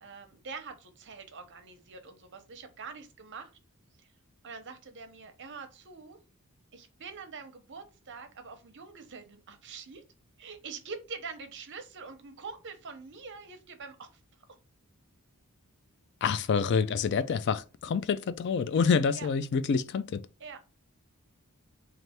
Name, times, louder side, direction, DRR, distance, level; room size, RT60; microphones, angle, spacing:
voice 1, 0.0-3.5 4.0-4.1 4.4-6.2 6.7-10.0 10.4-14.2 19.1-19.3 20.4-20.6, right 5 dB, 55° right, 0.8 m, -44 dB
voice 2, 16.2-20.3, left 5 dB, 50° left, 0.3 m, -27 dB
3.3 x 2.5 x 4.2 m
head